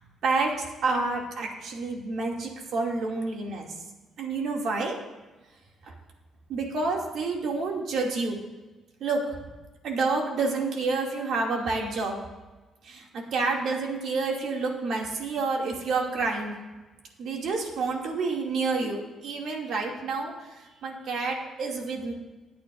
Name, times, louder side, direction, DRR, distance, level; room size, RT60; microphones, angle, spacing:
voice 1, 0.2-3.7 4.2-5.0 6.5-8.4 9.0-9.4 9.8-12.2 12.8-16.5 17.2-20.3 20.8-22.1, right 3 dB, 70° right, 0 dB, 2.4 m, -29 dB
20.0 x 8.7 x 2.6 m, 1.2 s
cardioid pair, 90°, 0 cm